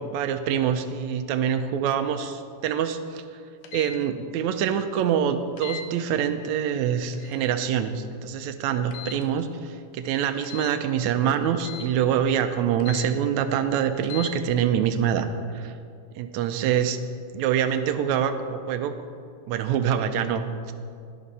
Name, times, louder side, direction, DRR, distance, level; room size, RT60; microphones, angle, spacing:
voice 1, 0.0-3.2 3.7-15.3 15.5-15.7 16.2-17.0 17.3-18.9 19.5-20.7, right 8 dB, 80° right, 9 dB, 1.9 m, -25 dB
sound 1, 3.6-4.0 5.6-5.9 7.1-7.4 8.9-9.3 10.4-10.8 11.6-11.9 12.8-13.1 14.0-14.3, left 8 dB, 75° left, 2.2 m, -38 dB
11.5 x 11.0 x 4.1 m, 2.3 s
omnidirectional pair, 3.4 m